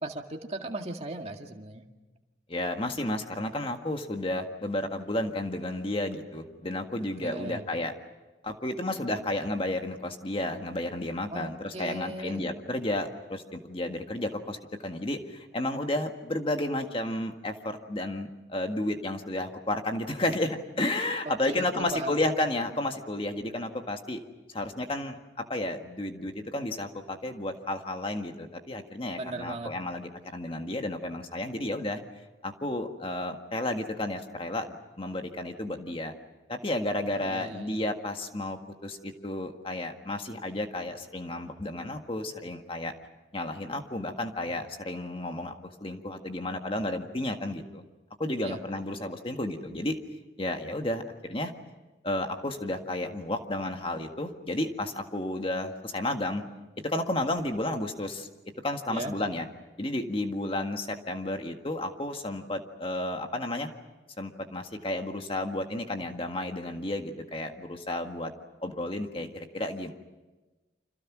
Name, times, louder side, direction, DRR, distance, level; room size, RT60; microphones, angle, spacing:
voice 1, 0.0-1.9 7.2-7.6 11.3-11.5 11.7-12.5 21.5-22.2 29.2-29.7 37.1-37.8 48.4-48.6 58.9-59.1, right 2 dB, 35° right, 3 dB, 2.0 m, -37 dB
voice 2, 2.5-7.9 8.4-24.2 24.5-32.0 32.4-36.1 36.5-42.9 43.3-47.8 48.2-50.0 50.4-51.5 52.0-56.4 56.8-58.3 58.6-59.5 59.8-63.7 64.2-68.3 68.6-69.9, left 1 dB, 30° left, 5 dB, 1.7 m, -32 dB
29.5 x 26.5 x 6.2 m, 1.1 s
head